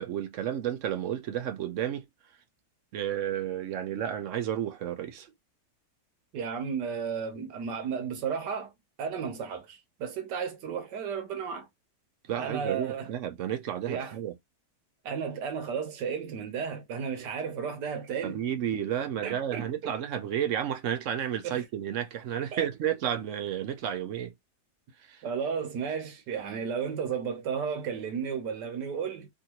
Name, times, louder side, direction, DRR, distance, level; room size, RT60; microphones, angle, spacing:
voice 1, 0.0-2.0 2.9-5.3 12.3-14.3 18.2-24.3 25.1-25.2, right 10 dB, 65° right, 0.8 m, -32 dB
voice 2, 6.3-8.7 9.0-11.7 12.4-13.1 13.9-14.2 15.0-18.4 19.2-19.9 21.4-21.6 22.5-22.7 25.2-29.3, right 6 dB, 90° right, 1.5 m, -33 dB
3.6 x 2.5 x 2.8 m
omnidirectional pair, 1.8 m